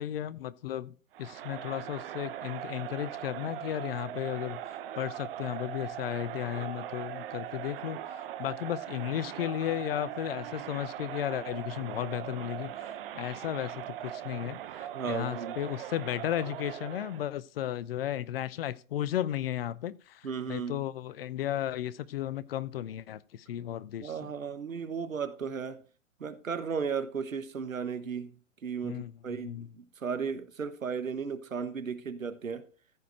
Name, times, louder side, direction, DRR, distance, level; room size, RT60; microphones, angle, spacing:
voice 1, 0.0-4.6 5.0-24.3 28.8-29.7, left 12 dB, 45° left, 0.6 m, -35 dB
Crowd, 1.1-17.3, right 11 dB, 45° right, 0.9 m, -40 dB
voice 2, 14.9-15.6 20.2-20.8 24.0-25.8 26.2-28.4 28.6-32.6, right 6 dB, 80° right, 1.3 m, -35 dB
14.5 x 4.8 x 4.6 m
figure-of-eight pair, 110°, 40 cm